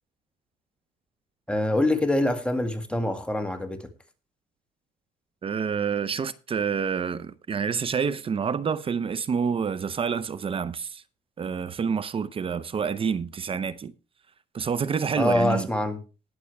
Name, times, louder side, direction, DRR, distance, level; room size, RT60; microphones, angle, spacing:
voice 1, 1.5-3.9 15.2-16.0, left 1 dB, 5° left, 1.9 m, -25 dB
voice 2, 5.4-11.0 11.4-13.9 14.5-15.7, right 6 dB, 35° right, 0.7 m, -28 dB
19.5 x 7.1 x 3.4 m
cardioid pair, 110°, 17 cm